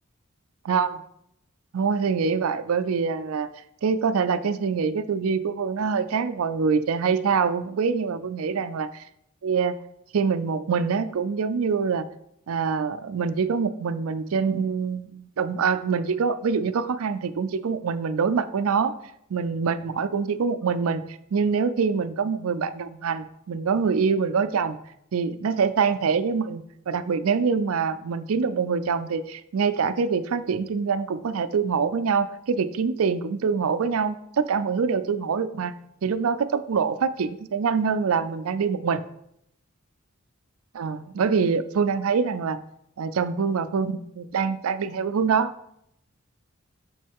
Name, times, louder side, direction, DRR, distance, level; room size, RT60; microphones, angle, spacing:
voice 1, 0.6-1.0 1.7-3.5 3.8-9.0 9.4-9.8 10.1-12.0 12.5-18.9 19.3-21.0 21.3-24.8 25.1-35.7 36.0-39.0 40.7-42.6 43.0-45.5, right 5 dB, 90° right, 12 dB, 0.4 m, -25 dB
6.2 x 5.4 x 3.5 m, 0.74 s
head